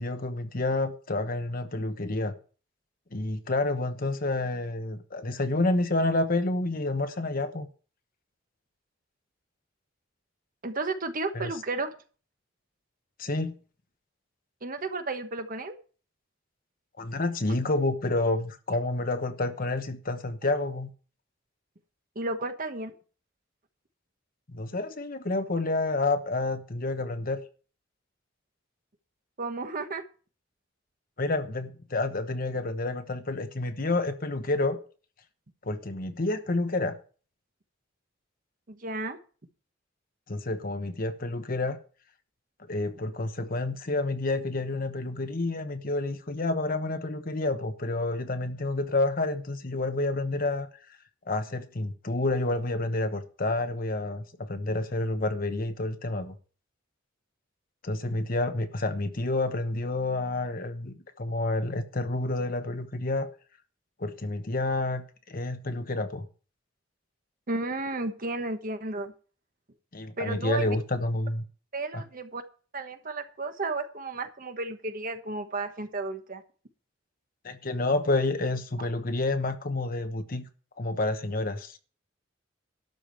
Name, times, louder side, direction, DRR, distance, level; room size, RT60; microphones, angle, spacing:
voice 1, 0.0-2.3 3.1-7.7 11.3-11.5 13.2-13.6 17.0-20.9 24.5-27.4 31.2-34.8 35.6-37.0 40.3-41.8 42.7-50.7 51.3-56.4 57.8-63.3 64.0-66.3 69.9-71.4 71.9-72.0 77.4-80.5 80.8-81.8, left 2 dB, 50° left, 1.1 m, -29 dB
voice 2, 10.6-11.9 14.6-15.8 22.1-22.9 29.4-30.0 38.7-39.2 67.5-69.1 70.2-70.8 71.7-72.4 72.7-76.4, right 3 dB, 45° right, 1.2 m, -33 dB
12.0 x 5.1 x 7.7 m
head